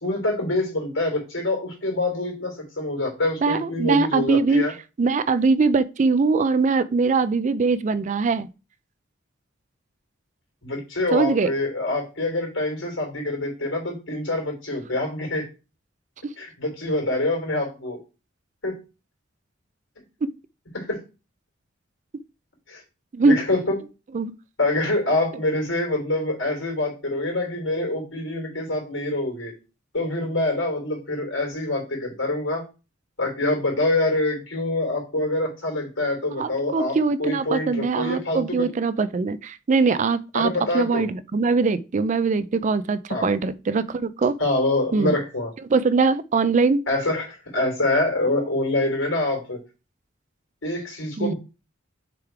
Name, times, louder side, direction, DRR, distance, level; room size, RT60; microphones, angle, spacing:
voice 1, 0.0-4.7 10.6-15.5 16.4-18.0 18.6-18.8 20.7-21.0 22.7-22.8 23.2-23.8 24.6-29.5 29.9-32.6 33.2-38.7 40.3-41.1 43.1-43.3 44.4-45.5 46.9-49.6 50.6-51.4, left 2 dB, 75° left, 3.3 m, -25 dB
voice 2, 3.4-4.6 5.0-8.5 11.1-11.5 20.2-20.3 23.1-23.4 24.1-24.3 36.3-44.3 44.9-45.1 45.7-46.8 51.2-51.3, right 4 dB, 40° right, 0.4 m, -22 dB
6.8 x 3.6 x 4.6 m
head